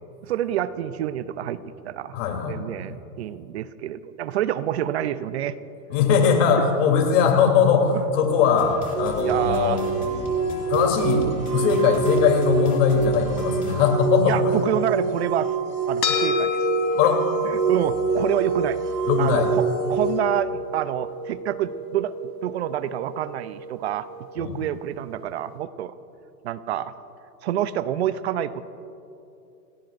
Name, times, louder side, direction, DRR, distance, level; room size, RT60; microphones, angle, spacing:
voice 1, 0.2-2.2 2.5-5.6 9.2-9.8 14.2-15.5 15.9-16.7 17.5-18.8 19.2-19.6 19.9-22.1 22.4-24.1 24.3-25.9 26.4-26.9 27.4-28.6, right 11 dB, 45° right, 15 dB, 0.6 m, -27 dB
voice 2, 2.1-2.6 5.9-9.9 10.7-14.6 17.0-17.2 19.1-19.5 24.4-24.6, left 6 dB, 50° left, 2 dB, 3.2 m, -20 dB
sound 1, 8.6-13.8, left 3 dB, 15° left, 2.4 m, -37 dB
sound 2, 8.9-20.2, right 5 dB, 80° right, 1.6 m, -26 dB
sound 3, 16.0-24.6, left 1 dB, 80° left, 3.8 m, -30 dB
29.0 x 18.0 x 2.6 m, 2.8 s
hypercardioid pair, 145°, 49 cm